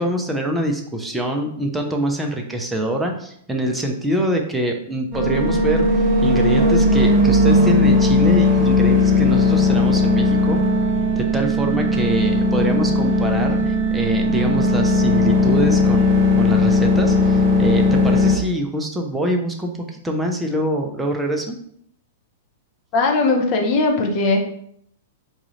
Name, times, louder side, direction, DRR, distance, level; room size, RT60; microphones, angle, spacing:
voice 1, 0.0-10.6 11.2-21.6, right 1 dB, 5° right, 2 dB, 0.5 m, -24 dB
sound 1, 5.1-18.4, left 2 dB, 40° right, 1.0 m, -17 dB
voice 2, 22.9-24.4, left 3 dB, 40° left, 2 dB, 0.6 m, -19 dB
3.9 x 2.4 x 3.1 m, 0.68 s
figure-of-eight pair, 105°, 0 cm